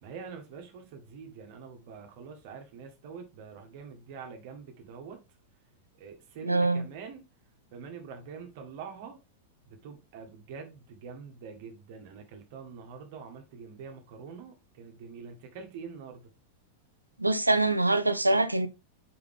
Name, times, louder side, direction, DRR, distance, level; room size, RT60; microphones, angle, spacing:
voice 1, 0.0-5.2 6.0-7.2 7.7-9.2 9.7-16.3, right 6 dB, 50° right, 1.7 m, -45 dB
voice 2, 6.5-6.8 17.2-18.7, right 2 dB, 85° right, 0.5 m, -24 dB
5.7 x 5.1 x 3.5 m
figure-of-eight pair, 90°, 0 cm